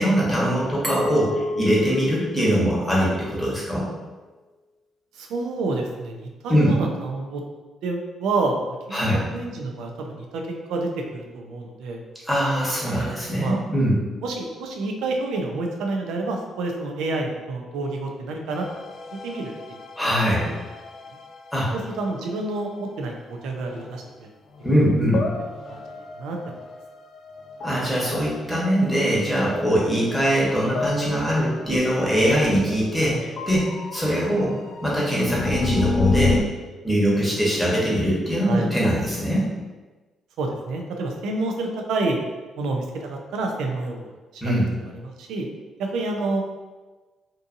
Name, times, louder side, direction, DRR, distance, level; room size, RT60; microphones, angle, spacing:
voice 1, 0.0-3.9 6.5-6.7 8.9-9.2 12.3-14.0 20.0-20.5 21.5-21.7 24.6-25.2 27.6-34.5 34.8-36.4 36.8-39.4 44.4-44.7, equal, ahead, -6 dB, 1.0 m, -22 dB
Glass, 0.8-3.6, left 1 dB, 25° right, 0.6 m, -30 dB
voice 2, 5.1-7.4 7.8-8.6 8.9-9.0 9.3-10.4 10.7-12.0 12.8-13.6 14.2-18.7 19.2-19.8 20.4-20.6 21.7-24.3 25.1-25.2 25.7-25.8 26.1-26.4 38.4-38.7 40.4-42.2 42.6-44.6 44.9-45.5 45.8-46.4, right 3 dB, 85° right, 2 dB, 0.4 m, -28 dB
sound 1, 18.5-22.4 23.6-24.1 24.5-36.4, left 3 dB, 55° left, 0.3 m, -31 dB
2.6 x 2.5 x 2.5 m, 1.3 s
cardioid pair, 90°, 0 cm